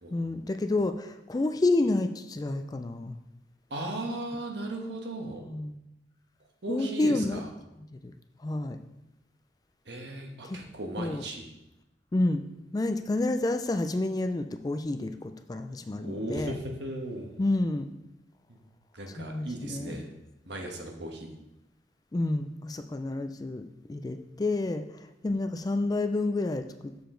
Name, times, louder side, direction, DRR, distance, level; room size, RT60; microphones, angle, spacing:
voice 1, 0.1-3.2 5.4-5.8 6.7-7.4 7.9-8.1 8.4-8.8 10.4-10.6 11.0-11.2 12.1-12.4 12.7-16.6 17.4-17.9 19.2-20.0 22.1-26.9, left 2 dB, 20° left, 8 dB, 0.3 m, -29 dB
voice 2, 3.7-5.4 6.6-7.5 9.8-11.4 16.0-17.4 18.5-18.6 18.9-20.1 20.4-21.3, right 1 dB, 70° right, 2 dB, 1.3 m, -37 dB
6.8 x 6.7 x 3.8 m, 0.90 s
head